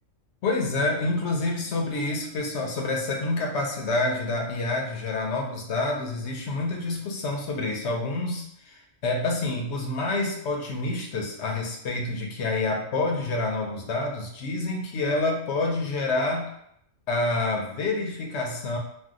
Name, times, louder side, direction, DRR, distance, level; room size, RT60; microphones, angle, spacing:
voice 1, 0.4-16.5 17.1-18.8, left 2 dB, 65° left, 1 dB, 0.8 m, -28 dB
2.7 x 2.2 x 3.6 m, 0.72 s
omnidirectional pair, 1.3 m